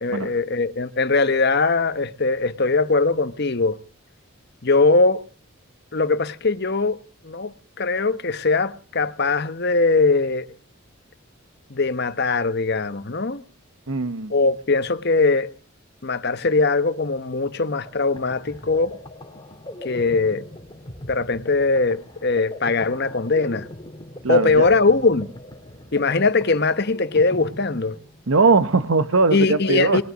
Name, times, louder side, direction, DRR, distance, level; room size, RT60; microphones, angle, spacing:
voice 1, 0.0-3.8 4.6-5.2 5.9-7.0 7.2-10.4 11.7-13.4 14.3-15.5 16.0-18.9 19.8-20.4 21.1-23.7 24.3-25.3 25.9-28.0 29.3-30.0, left 3 dB, 50° left, 1.1 m, -21 dB
voice 2, 13.9-14.3 24.2-24.7 28.3-30.0, right 4 dB, 75° right, 0.9 m, -20 dB
sound 1, 17.8-28.4, left 1 dB, 20° left, 2.0 m, -40 dB
20.0 x 11.0 x 6.2 m
head